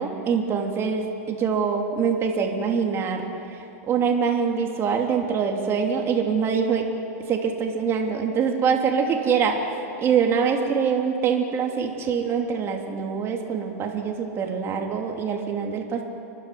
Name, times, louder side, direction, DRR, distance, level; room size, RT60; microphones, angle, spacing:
voice 1, 0.0-3.3 3.9-6.9 7.3-9.6 10.0-16.0, right 6 dB, 30° right, 2 dB, 3.1 m, -24 dB
29.5 x 12.0 x 9.5 m, 2.9 s
hypercardioid pair, 125°, 8 cm